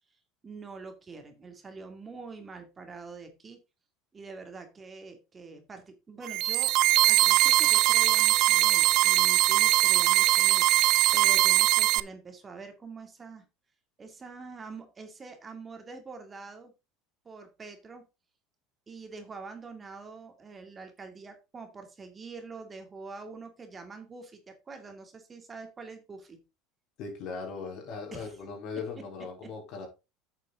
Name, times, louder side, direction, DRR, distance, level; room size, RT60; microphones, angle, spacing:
voice 1, 0.4-3.6 4.1-6.7 7.1-13.5 14.0-16.7 17.2-18.0 18.9-26.4 28.1-28.3 29.4-29.5, right 4 dB, 25° right, 2.4 m, -45 dB
sound 1, 6.2-12.0, right 17 dB, 60° right, 0.5 m, -21 dB
voice 2, 27.0-29.9, left 5 dB, 55° left, 4.2 m, -39 dB
8.9 x 6.7 x 3.8 m
supercardioid pair, 95°, 0 cm